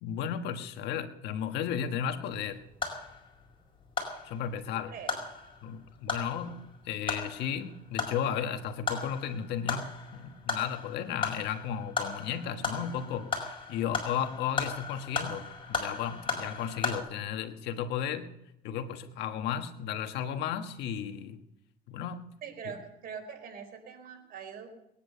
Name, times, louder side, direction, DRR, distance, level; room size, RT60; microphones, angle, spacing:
voice 1, 0.0-2.6 4.2-4.9 5.6-18.3 18.6-21.4 21.9-22.3, left 8 dB, 85° left, 7 dB, 1.5 m, -34 dB
sound 1, 2.3-17.0, left 5 dB, 30° left, 5.4 m, -37 dB
voice 2, 22.4-24.7, right 7 dB, 60° right, 5 dB, 4.3 m, -43 dB
21.0 x 10.0 x 6.8 m, 0.81 s
cardioid pair, 110°, 17 cm